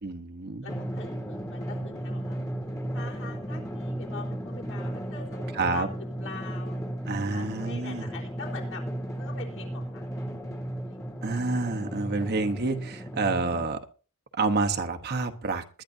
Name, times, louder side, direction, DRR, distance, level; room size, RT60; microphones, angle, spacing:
voice 1, 0.0-0.7 5.5-5.9 7.1-8.1 11.2-13.8 14.3-15.8, right 3 dB, 45° right, 5 dB, 1.0 m, -28 dB
voice 2, 0.6-2.4 2.9-5.9 6.2-6.8 7.3-8.8 9.2-10.0 10.9-11.0, left 4 dB, 60° left, 0 dB, 3.8 m, -43 dB
Drum, 0.7-13.6, right 1 dB, 15° left, 1.5 m, -35 dB
sound 1, 0.8-13.6, equal, ahead, 0.7 m, -45 dB
21.0 x 11.5 x 2.7 m, 0.35 s
head